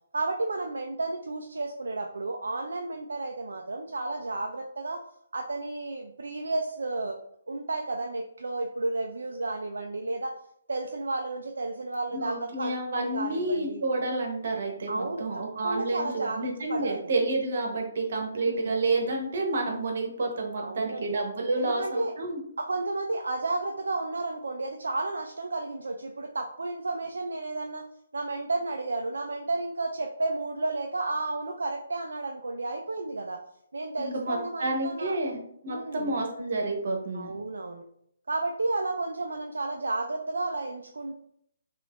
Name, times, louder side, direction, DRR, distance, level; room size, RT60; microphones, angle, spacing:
voice 1, 0.1-5.0 5.3-7.2 7.5-10.3 10.7-13.8 14.9-15.3 15.6-17.1 18.4-18.7 20.6-21.2 21.6-22.1 22.6-27.8 28.1-33.4 33.7-35.2 35.7-36.1 37.1-37.8 38.3-41.1, right 2 dB, 70° right, 2 dB, 0.3 m, -32 dB
voice 2, 12.1-22.4 34.0-37.3, right 2 dB, 55° right, 1 dB, 0.9 m, -29 dB
3.2 x 2.8 x 2.4 m, 0.70 s
figure-of-eight pair, 135°, 0 cm